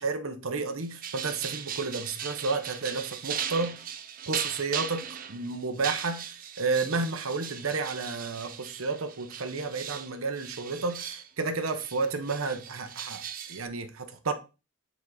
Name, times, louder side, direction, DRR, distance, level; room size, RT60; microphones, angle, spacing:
voice 1, 0.0-3.8 4.3-13.2 13.5-14.3, right 4 dB, 85° right, 0.9 m, -31 dB
sound 1, 0.8-11.3 11.7-13.7, right 8 dB, 40° right, 0.6 m, -38 dB
8.9 x 4.1 x 3.9 m
head